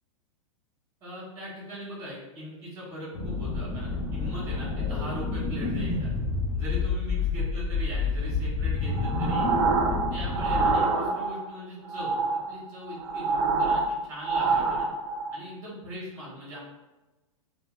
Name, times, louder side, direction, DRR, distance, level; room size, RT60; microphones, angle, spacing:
voice 1, 1.0-6.1 6.5-9.5 10.1-14.9 15.3-16.7, equal, 15° right, -6 dB, 0.9 m, -40 dB
sound 1, 3.1-10.8, left 4 dB, 40° left, 0.6 m, -29 dB
sound 2, 8.9-11.5 11.9-15.4, right 4 dB, 50° right, 0.4 m, -26 dB
2.8 x 2.1 x 3.0 m, 1.1 s
hypercardioid pair, 105°, 18 cm